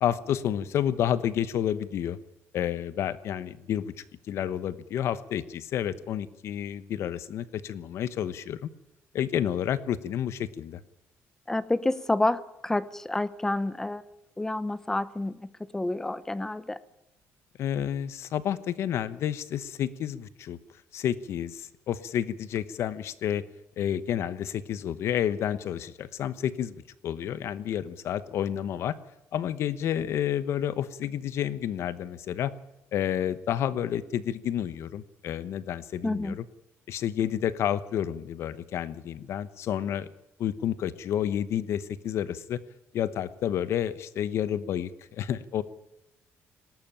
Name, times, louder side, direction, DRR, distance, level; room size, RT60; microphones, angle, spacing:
voice 1, 0.0-2.2 2.5-3.9 4.3-8.7 9.1-10.8 17.6-20.6 20.9-23.4 23.8-28.9 29.3-32.5 32.9-36.4 36.9-40.1 40.4-42.6 42.9-45.6, left 10 dB, 60° left, 16 dB, 1.0 m, -30 dB
voice 2, 11.5-14.0 14.4-16.8 36.0-36.4, left 2 dB, 10° left, 17 dB, 0.8 m, -29 dB
19.5 x 18.0 x 8.8 m, 0.89 s
cardioid pair, 160°, 5 cm